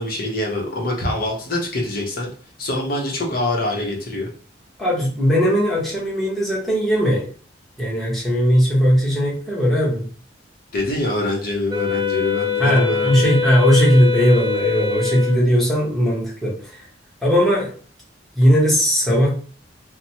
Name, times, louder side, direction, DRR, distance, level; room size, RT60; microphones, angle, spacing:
voice 1, 0.0-2.3 2.6-4.3 10.7-13.4, left 1 dB, 50° left, -1 dB, 0.8 m, -24 dB
voice 2, 4.8-7.2 7.8-10.1 12.6-16.8 17.2-17.7 18.4-19.3, equal, ahead, -7 dB, 0.9 m, -18 dB
Wind instrument woodwind instrument, 11.7-15.5, left 6 dB, 25° right, 0.4 m, -23 dB
3.0 x 2.0 x 2.8 m, 0.41 s
head